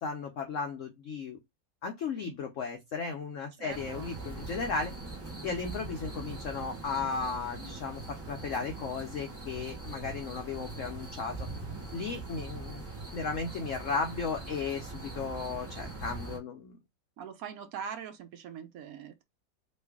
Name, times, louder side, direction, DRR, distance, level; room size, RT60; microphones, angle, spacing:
voice 1, 0.0-1.4 1.8-4.9 5.4-11.5 11.9-12.8 13.1-16.8, left 5 dB, 85° left, 0.6 m, -35 dB
voice 2, 3.6-4.1 12.0-12.2 17.2-19.2, right 7 dB, 70° right, 0.8 m, -42 dB
sound 1, 3.7-16.4, right 3 dB, 20° right, 0.4 m, -42 dB
3.1 x 2.5 x 3.5 m
omnidirectional pair, 2.0 m